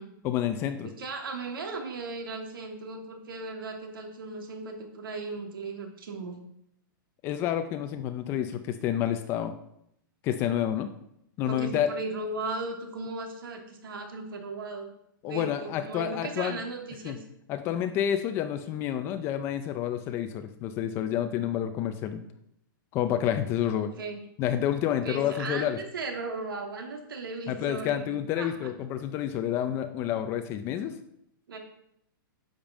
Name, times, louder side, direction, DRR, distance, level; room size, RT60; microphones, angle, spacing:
voice 1, 0.2-0.9 7.2-9.5 10.2-10.9 11.4-11.9 15.2-16.6 17.0-17.2 17.5-22.2 22.9-23.9 24.4-25.8 27.5-31.0, left 10 dB, 20° left, 9 dB, 0.5 m, -29 dB
voice 2, 0.8-6.4 11.5-14.9 15.2-17.2 23.6-24.2 25.0-28.7 31.5-31.6, right 3 dB, 90° right, 2 dB, 2.9 m, -37 dB
10.5 x 5.3 x 7.2 m, 0.76 s
hypercardioid pair, 165°, 11 cm